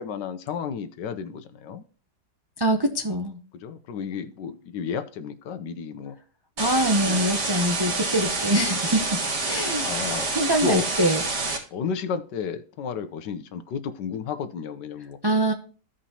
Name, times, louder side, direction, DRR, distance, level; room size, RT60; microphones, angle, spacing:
voice 1, 0.0-1.8 3.6-6.2 7.0-7.2 9.8-10.3 10.6-10.9 11.7-15.2, left 6 dB, 80° left, 11 dB, 1.4 m, -32 dB
voice 2, 2.6-3.4 6.6-9.2 9.4-9.9 10.3-11.2 15.2-15.5, right 1 dB, 35° right, 3 dB, 0.3 m, -24 dB
sound 1, 6.6-11.6, right 3 dB, 70° right, 2.3 m, -27 dB
15.0 x 5.1 x 2.9 m, 0.39 s
omnidirectional pair, 1.9 m